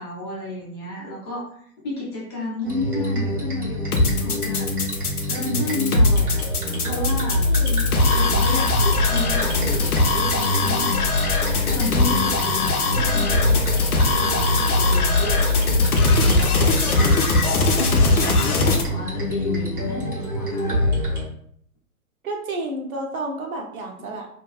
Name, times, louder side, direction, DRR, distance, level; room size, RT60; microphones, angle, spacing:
voice 1, 0.0-4.7 5.3-6.4 6.8-7.4 8.1-15.6 16.1-17.7 18.1-20.7, left 2 dB, 20° left, -5 dB, 0.4 m, -32 dB
sound 1, 2.6-21.2, left 1 dB, 90° right, 1.1 m, -24 dB
sound 2, 3.9-18.8, left 3 dB, 80° left, 0.6 m, -21 dB
voice 2, 7.5-7.8 22.2-24.3, right 2 dB, 70° right, 2 dB, 0.8 m, -30 dB
2.5 x 2.2 x 2.3 m, 0.62 s
figure-of-eight pair, 110°, 44 cm